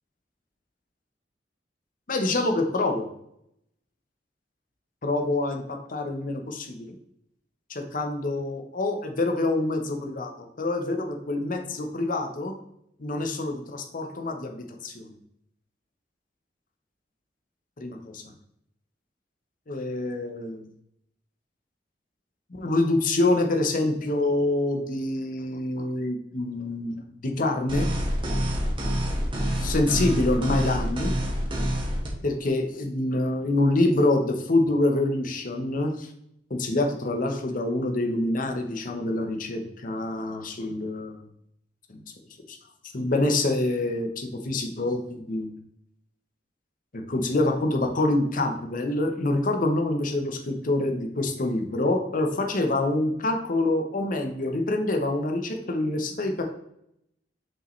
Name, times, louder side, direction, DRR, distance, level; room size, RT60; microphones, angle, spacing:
voice 1, 2.1-3.1 5.0-6.9 7.7-12.5 13.0-15.2 17.8-18.2 19.7-20.7 22.5-27.9 29.3-31.1 32.2-36.1 36.5-41.2 41.9-42.0 42.5-42.6 42.9-45.5 46.9-56.4, left 2 dB, 50° left, 4 dB, 0.8 m, -26 dB
sound 1, 27.7-32.1, equal, 30° right, 1.5 m, -27 dB
6.1 x 4.9 x 3.2 m, 0.76 s
head